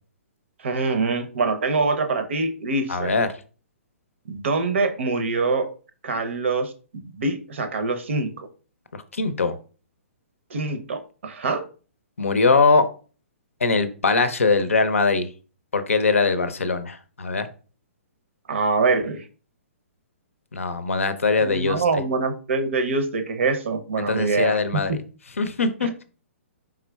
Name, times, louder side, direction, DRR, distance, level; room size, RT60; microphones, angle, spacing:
voice 1, 0.6-3.1 4.3-5.7 6.0-8.5 10.5-11.6 18.5-19.2 21.4-24.8 25.8-25.9, right 3 dB, 60° right, 8 dB, 0.6 m, -24 dB
voice 2, 2.9-3.3 9.1-9.5 12.2-12.8 13.6-15.3 15.7-17.5 20.5-21.8 24.0-25.0 25.4-26.0, left 4 dB, 75° left, 11 dB, 0.5 m, -21 dB
4.4 x 3.6 x 2.2 m, 0.38 s
figure-of-eight pair, 125°, 7 cm